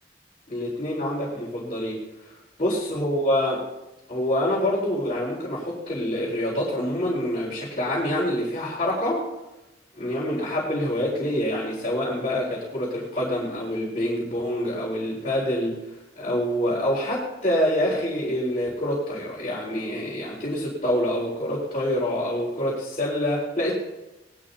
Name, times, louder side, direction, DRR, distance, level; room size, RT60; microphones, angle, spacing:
voice 1, 0.5-2.0 2.6-3.6 4.1-9.2 10.0-15.8 16.2-23.7, left 1 dB, 35° left, -8 dB, 4.1 m, -26 dB
19.5 x 12.5 x 2.8 m, 1.0 s
head